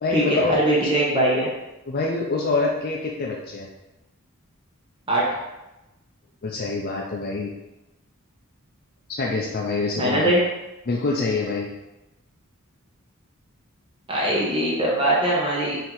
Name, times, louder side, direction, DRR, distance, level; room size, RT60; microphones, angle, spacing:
voice 1, 0.0-0.5 1.9-3.7 6.4-7.5 9.1-10.3 10.9-11.7, left 3 dB, 45° left, -2 dB, 0.4 m, -25 dB
voice 2, 0.6-1.5 5.1-5.4 10.0-10.4 14.1-15.8, right 1 dB, 25° right, -5 dB, 0.8 m, -21 dB
4.5 x 2.7 x 3.8 m, 0.98 s
head